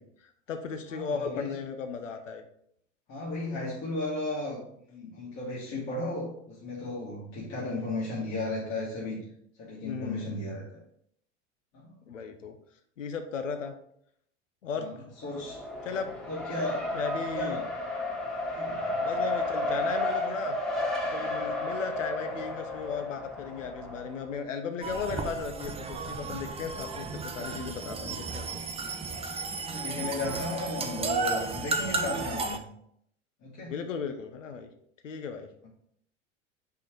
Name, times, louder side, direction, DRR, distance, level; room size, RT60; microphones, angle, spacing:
voice 1, 0.0-2.4 7.5-7.9 9.8-10.5 12.1-12.6 13.0-13.7 14.6-14.9 15.8-16.1 16.9-17.6 19.0-20.6 21.0-28.6 33.7-34.7 35.0-35.5, left 5 dB, 85° left, 7 dB, 0.8 m, -36 dB
voice 2, 0.9-1.5 3.1-4.6 4.9-9.2 9.6-10.8 11.7-11.9 14.7-14.9 15.2-15.6 16.3-16.9 17.3-17.7 18.6-19.0 29.7-32.7 33.4-33.7, left 2 dB, 45° left, -6 dB, 2.3 m, -35 dB
Race car auto racing, 15.2-24.3, left 2 dB, ahead, 1.5 m, -32 dB
sound 1, 24.8-32.6, right 4 dB, 15° right, 0.7 m, -33 dB
5.2 x 4.8 x 4.6 m, 0.71 s
hypercardioid pair, 85°, 37 cm